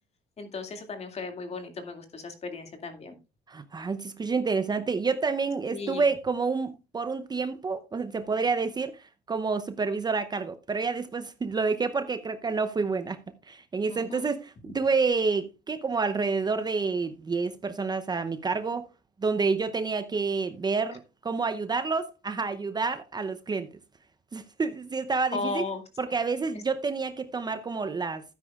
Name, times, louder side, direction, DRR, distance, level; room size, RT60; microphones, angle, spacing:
voice 1, 0.4-3.2 5.7-6.0 13.9-14.2 25.3-25.8, left 4 dB, 40° left, 2.3 m, -35 dB
voice 2, 3.5-13.2 13.5-18.8 19.2-23.7 24.3-25.7 26.0-28.2, right 4 dB, 25° right, 0.7 m, -29 dB
12.5 x 9.8 x 2.4 m
cardioid pair, 110°, 17 cm